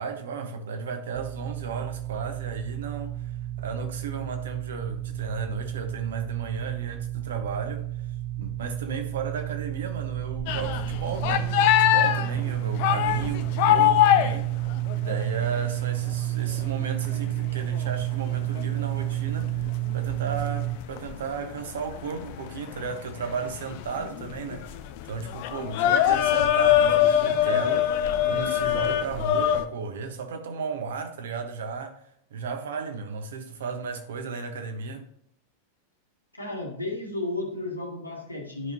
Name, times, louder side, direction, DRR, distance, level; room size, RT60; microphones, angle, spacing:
voice 1, 0.0-7.9 8.4-11.5 11.8-14.5 14.9-24.8 25.0-32.0 32.3-35.0, right 5 dB, 60° right, 1.2 m, -34 dB
sound 1, 1.1-20.8, right 15 dB, 30° right, 0.5 m, -31 dB
sound 2, 10.5-15.7 16.1-16.2 16.5-29.7, left 11 dB, 50° left, 0.7 m, -24 dB
voice 2, 36.3-38.7, left 2 dB, 85° left, 1.7 m, -33 dB
11.5 x 5.3 x 2.9 m
figure-of-eight pair, 90°, 0 cm